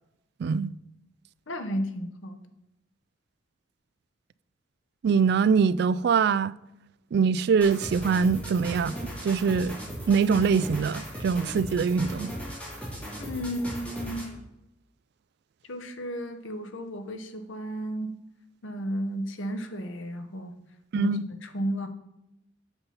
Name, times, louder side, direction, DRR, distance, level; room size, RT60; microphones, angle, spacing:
voice 1, 0.4-0.7 5.0-6.5 7.1-8.9 9.2-9.8 10.1-12.3 20.9-21.2, right 5 dB, 55° right, 0.3 m, -23 dB
voice 2, 1.5-2.4 13.2-14.3 15.7-18.2 18.6-20.6 20.9-21.1 21.4-21.9, equal, 85° left, 1.0 m, -33 dB
sound 1, 7.6-14.4, equal, 5° left, 2.8 m, -37 dB
8.1 x 6.8 x 5.6 m
head